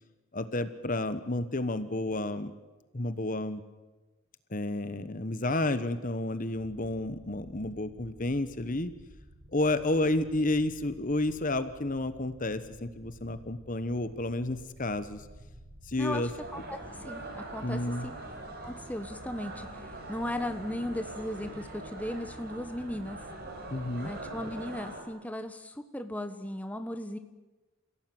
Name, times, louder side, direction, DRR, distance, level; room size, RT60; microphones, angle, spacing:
voice 1, 0.3-2.5 2.9-3.6 4.5-8.9 9.5-15.3 15.8-16.3 17.6-18.1 23.7-24.1, left 2 dB, 40° left, 12 dB, 1.1 m, -31 dB
sound 1, 6.5-24.4, equal, 25° right, 2.3 m, -53 dB
sound 2, 16.2-25.0, right 2 dB, 45° right, 4.7 m, -43 dB
voice 2, 16.7-18.1 18.6-19.7 20.1-23.2 24.0-27.2, left 1 dB, 5° left, 8 dB, 1.3 m, -36 dB
28.5 x 16.5 x 9.4 m, 1.2 s
head